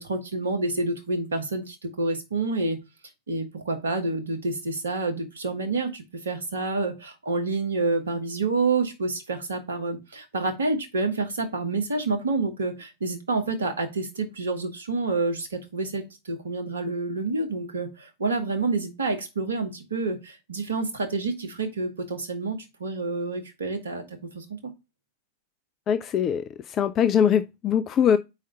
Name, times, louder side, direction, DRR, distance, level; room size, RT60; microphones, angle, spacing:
voice 1, 0.0-2.8 3.3-24.0 24.3-24.7, right 3 dB, 70° right, 1.4 m, -28 dB
voice 2, 25.9-28.2, left 8 dB, 30° left, 0.4 m, -22 dB
4.9 x 4.0 x 5.4 m
figure-of-eight pair, 90°, 0 cm